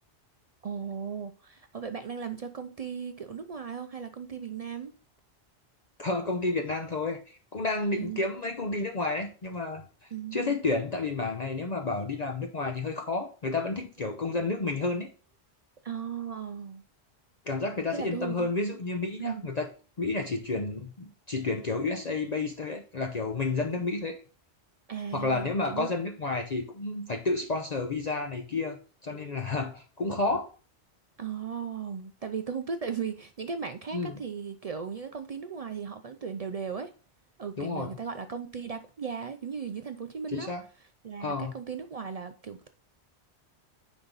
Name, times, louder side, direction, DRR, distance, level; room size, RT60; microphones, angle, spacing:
voice 1, 0.6-5.0 8.0-8.2 10.1-10.6 15.8-16.8 17.9-18.5 19.2-19.5 24.9-25.9 31.2-36.9 37.4-40.5 41.0-42.7, right 6 dB, 55° right, 0.4 m, -36 dB
voice 2, 6.0-15.1 17.5-19.7 20.0-24.2 25.1-28.8 29.0-30.5 33.9-34.2 37.6-38.0 40.3-40.6 41.2-41.5, left 3 dB, 45° left, 0.7 m, -31 dB
9.4 x 3.5 x 3.9 m
omnidirectional pair, 1.1 m